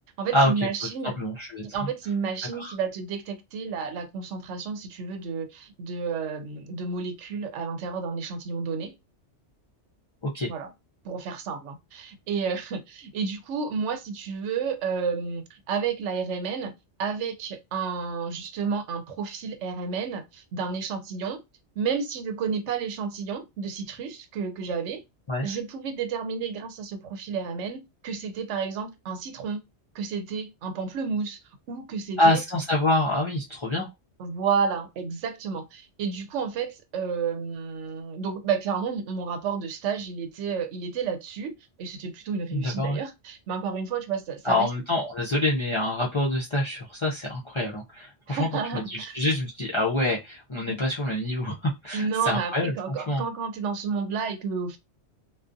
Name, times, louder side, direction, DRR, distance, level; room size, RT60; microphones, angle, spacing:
voice 1, 0.2-1.2 1.6-9.0 10.5-10.7 11.0-21.4 21.8-25.0 25.4-29.6 29.9-31.4 31.7-32.4 34.2-44.7 48.3-49.1 50.7-50.8 51.9-54.8, right 6 dB, 85° right, 0.9 m, -31 dB
voice 2, 1.0-1.6 2.6-2.7 10.3-10.5 25.3-25.5 32.2-33.9 42.5-43.0 44.4-53.2, left 1 dB, 45° left, 0.4 m, -26 dB
2.3 x 2.3 x 2.5 m
omnidirectional pair, 1.2 m